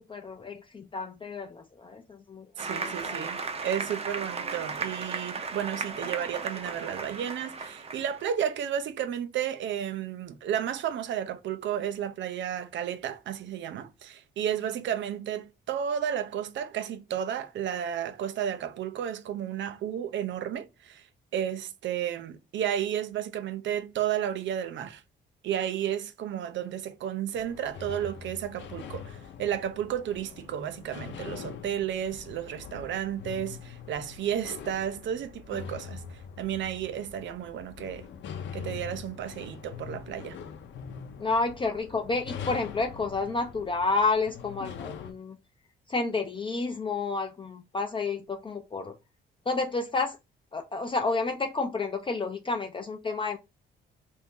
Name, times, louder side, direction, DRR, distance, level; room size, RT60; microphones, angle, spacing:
voice 1, 0.0-3.3 41.2-45.4 45.9-49.0 49.5-50.2 50.5-53.4, left 3 dB, 25° left, 0.5 m, -30 dB
Applause, 2.6-8.2, right 4 dB, 30° right, 0.6 m, -35 dB
voice 2, 2.6-21.1 21.3-25.0 25.4-38.1 38.5-40.4, right 9 dB, 70° right, 0.6 m, -32 dB
sound 1, 27.3-45.1, left 7 dB, 70° left, 0.7 m, -43 dB
2.7 x 2.6 x 3.6 m
cardioid pair, 90°, 20 cm